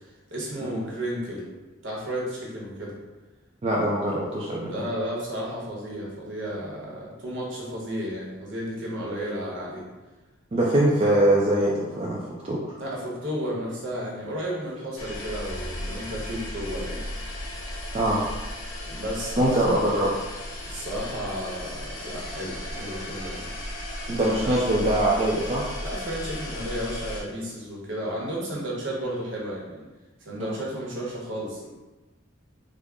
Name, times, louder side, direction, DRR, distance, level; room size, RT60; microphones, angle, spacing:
voice 1, 0.0-1.5 1.8-2.9 4.7-9.8 12.8-17.0 18.9-19.8 20.7-23.5 24.3-24.6 25.8-29.8 30.2-31.7, equal, 65° right, -4 dB, 0.9 m, -33 dB
voice 2, 3.6-4.7 10.5-12.8 17.9-18.2 19.4-20.1 24.1-25.6 30.4-30.6, right 1 dB, 30° right, -5 dB, 0.3 m, -23 dB
sound 1, 15.0-27.2, left 1 dB, 80° left, 0.7 m, -35 dB
3.5 x 2.0 x 3.5 m, 1.2 s
head